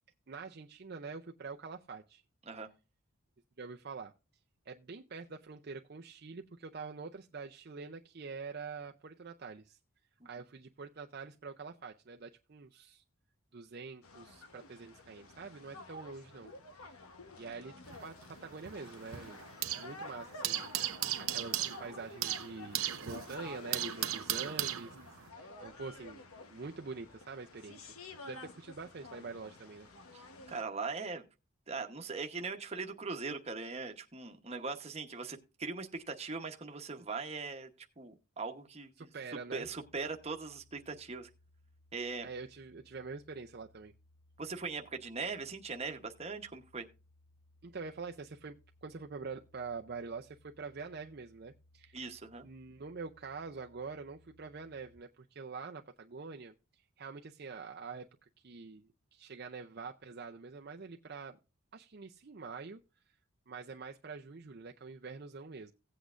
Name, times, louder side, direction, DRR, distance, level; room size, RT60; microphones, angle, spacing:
voice 1, 0.3-2.2 3.6-4.1 4.7-9.8 10.2-13.0 13.5-17.0 17.4-17.7 18.0-19.4 19.8-25.0 25.3-26.2 26.5-27.9 28.3-29.9 39.0-39.7 42.2-43.9 47.6-52.0 52.4-58.1 58.4-61.4 61.7-62.8 63.1-63.2 63.5-65.7, right 4 dB, 45° right, 0.5 m, -45 dB
sound 1, 14.0-30.6, left 2 dB, 85° left, 1.1 m, -51 dB
sound 2, 17.8-20.0 20.2-25.3, right 12 dB, 85° right, 0.7 m, -37 dB
voice 2, 30.1-31.2 31.7-37.7 38.0-39.1 39.5-41.3 41.9-42.3 44.4-46.9 51.9-52.5, right 4 dB, 30° right, 1.0 m, -40 dB
sound 3, 39.6-55.0, left 1 dB, 60° left, 6.3 m, -66 dB
16.5 x 8.2 x 2.5 m
head